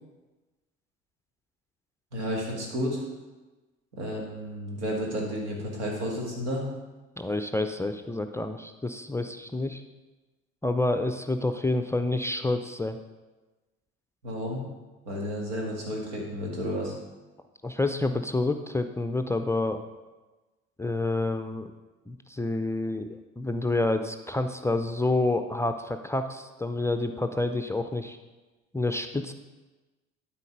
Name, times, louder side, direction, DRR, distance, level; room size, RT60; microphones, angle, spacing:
voice 1, 2.1-3.0 3.9-6.7 14.2-14.6 15.1-16.9, equal, 80° right, -1 dB, 2.0 m, -32 dB
voice 2, 7.2-9.8 10.6-13.0 17.6-19.9 20.8-21.7 22.1-28.2 28.7-29.3, left 2 dB, 10° left, 7 dB, 0.5 m, -28 dB
12.0 x 4.3 x 5.3 m, 1.2 s
figure-of-eight pair, 55°, 34 cm